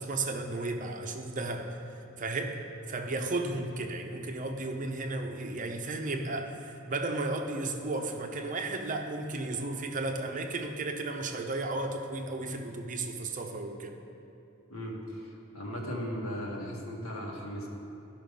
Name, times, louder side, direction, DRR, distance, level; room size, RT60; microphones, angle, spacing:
voice 1, 0.0-1.8 2.2-14.0, right 2 dB, 40° right, 4 dB, 0.7 m, -34 dB
voice 2, 14.7-17.7, equal, 75° left, -2 dB, 1.8 m, -37 dB
13.0 x 5.9 x 5.2 m, 3.0 s
head